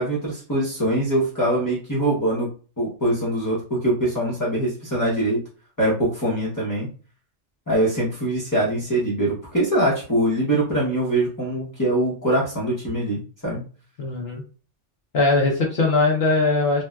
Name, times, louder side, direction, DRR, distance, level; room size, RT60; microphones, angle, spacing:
voice 1, 0.0-2.5 2.8-5.4 5.8-6.9 7.7-13.7, right 1 dB, 20° left, -7 dB, 0.7 m, -23 dB
voice 2, 14.0-14.4 15.1-16.8, left 3 dB, 65° left, -1 dB, 0.8 m, -20 dB
3.9 x 2.2 x 2.2 m, 0.39 s
omnidirectional pair, 1.2 m